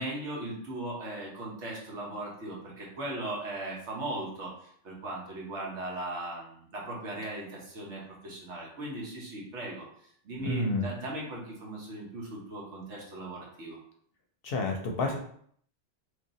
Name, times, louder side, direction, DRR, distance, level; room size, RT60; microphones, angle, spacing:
voice 1, 0.0-4.5 4.8-9.9 10.2-13.8, right 1 dB, 75° right, -3 dB, 1.4 m, -38 dB
voice 2, 10.4-10.8 14.4-15.2, left 2 dB, 60° left, 2 dB, 0.7 m, -29 dB
3.3 x 2.8 x 3.9 m, 0.62 s
omnidirectional pair, 1.2 m